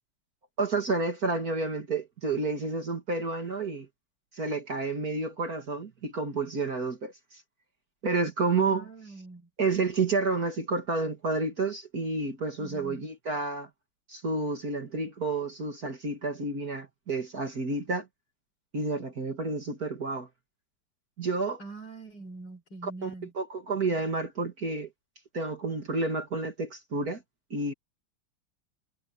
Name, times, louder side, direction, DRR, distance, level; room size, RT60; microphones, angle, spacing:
voice 1, 0.6-3.9 4.3-7.4 8.0-8.9 9.6-13.7 14.1-18.1 18.7-20.3 21.2-21.6 22.8-24.9 25.3-27.2 27.5-27.7, right 3 dB, 45° right, 2.5 m, -30 dB
voice 2, 8.6-9.5 12.6-13.0 21.6-23.3, right 3 dB, 50° left, 6.8 m, -43 dB
omnidirectional pair, 2.4 m